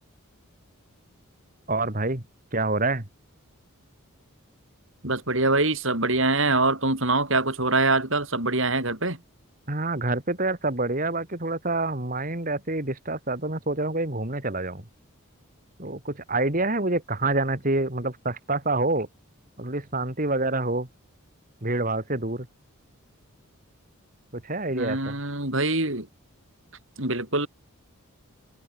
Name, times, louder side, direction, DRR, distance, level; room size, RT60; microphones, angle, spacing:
voice 1, 1.7-2.2 2.5-3.1 9.7-14.8 15.8-19.1 19.6-20.9 21.6-22.5 24.3-25.2, right 2 dB, 40° right, 2.8 m, -27 dB
voice 2, 5.0-9.2 24.7-26.1 27.0-27.5, right 2 dB, 60° right, 6.2 m, -24 dB
head